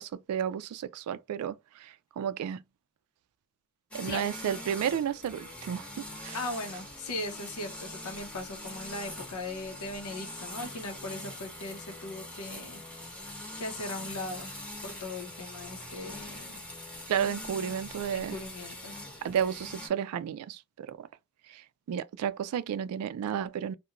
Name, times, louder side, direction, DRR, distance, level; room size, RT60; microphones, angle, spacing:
voice 1, 0.0-2.6 3.9-5.9 6.2-6.4 17.1-18.4 19.2-21.1 21.5-23.7, right 8 dB, 85° right, 0.3 m, -32 dB
sound 1, 3.9-19.9, left 1 dB, 5° left, 0.8 m, -43 dB
voice 2, 6.3-13.2 13.6-14.5 14.8-16.6 18.1-19.2, left 2 dB, 90° left, 0.7 m, -39 dB
2.4 x 2.1 x 2.8 m
head